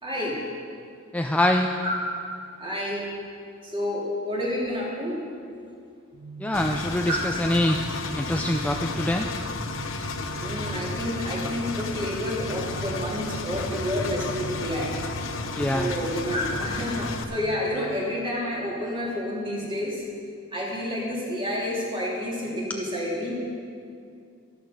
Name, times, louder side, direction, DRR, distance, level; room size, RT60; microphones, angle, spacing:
voice 1, 0.0-0.4 1.8-1.9 2.6-3.1 3.6-5.2 7.1-7.2 10.4-14.9 15.7-20.0 20.5-23.4, left 1 dB, 25° right, -4 dB, 3.1 m, -29 dB
voice 2, 1.1-1.7 6.4-7.8 8.2-9.3 15.5-15.9, left 1 dB, 5° left, 3 dB, 0.4 m, -24 dB
sound 1, 6.1-19.2, right 6 dB, 50° right, 0.5 m, -44 dB
Engine, 6.5-17.2, left 3 dB, 70° left, 0.9 m, -32 dB
12.5 x 12.5 x 5.2 m, 2.4 s
head